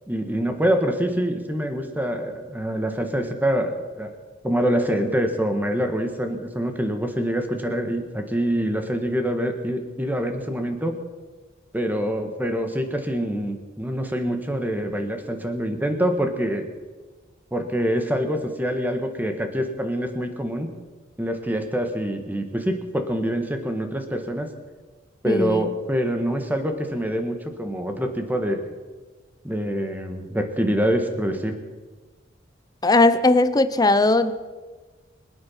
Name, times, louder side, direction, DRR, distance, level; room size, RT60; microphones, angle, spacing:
voice 1, 0.1-4.1 4.4-11.0 11.7-16.7 17.5-20.7 21.2-24.5 25.2-28.6 29.4-31.6, equal, 10° right, 6 dB, 1.5 m, -25 dB
voice 2, 25.3-25.7 32.8-34.3, left 2 dB, 20° left, 12 dB, 0.6 m, -18 dB
24.5 x 8.9 x 5.7 m, 1.3 s
head